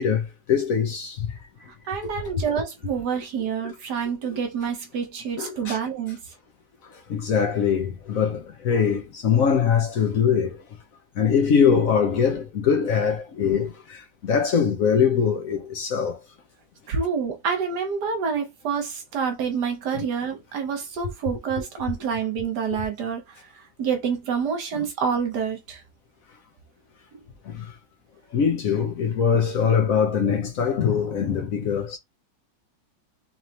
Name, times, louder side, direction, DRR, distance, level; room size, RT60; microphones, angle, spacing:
voice 1, 0.0-1.3 5.4-5.8 7.1-10.6 11.2-16.2 19.9-20.0 27.5-27.7 28.3-32.0, left 7 dB, 65° left, 0.8 m, -22 dB
voice 2, 1.9-6.2 16.9-23.2 23.8-25.8, right 6 dB, 60° right, 1.5 m, -27 dB
4.1 x 3.1 x 2.9 m
omnidirectional pair, 2.2 m